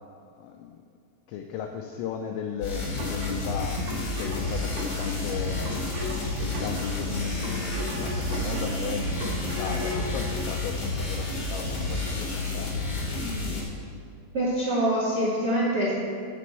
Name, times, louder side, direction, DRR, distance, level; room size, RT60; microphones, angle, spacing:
voice 1, 0.4-0.7 1.3-5.8 6.4-13.3, left 7 dB, 85° left, 3 dB, 2.5 m, -36 dB
sound 1, 2.6-13.6, left 2 dB, 70° left, 0.9 m, -30 dB
sound 2, 3.0-10.1, left 1 dB, 70° right, 3.5 m, -36 dB
sound 3, 4.4-12.2, right 1 dB, 40° right, 1.8 m, -45 dB
voice 2, 13.2-13.5 14.3-15.9, right 1 dB, 85° right, -8 dB, 1.2 m, -25 dB
11.5 x 4.3 x 7.8 m, 2.4 s
omnidirectional pair, 5.8 m